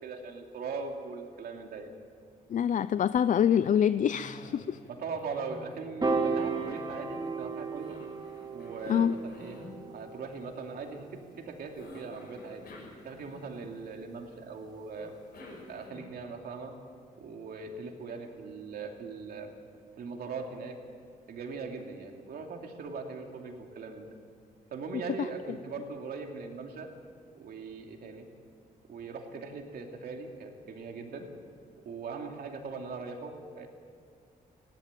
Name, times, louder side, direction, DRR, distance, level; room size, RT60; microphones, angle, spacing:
voice 1, 0.0-1.9 4.9-8.0 8.5-9.6 9.9-11.1 11.4-12.6 13.0-15.1 15.7-16.8 17.2-19.5 20.0-20.8 21.3-24.1 24.7-26.9 27.3-28.3 28.9-31.3 31.8-33.7, right 4 dB, 80° right, 3 dB, 2.8 m, -40 dB
voice 2, 2.5-4.8 8.9-9.1, left 8 dB, 55° left, 15 dB, 0.5 m, -25 dB
Cough, 4.1-4.9 5.2-7.2 7.8-9.8 11.7-13.7 15.0-16.3, left 2 dB, 80° left, 6.1 m, -50 dB
Piano, 6.0-12.4, right 4 dB, 25° right, 2.9 m, -35 dB
19.5 x 16.5 x 9.2 m, 2.2 s
cardioid pair, 100°, 16 cm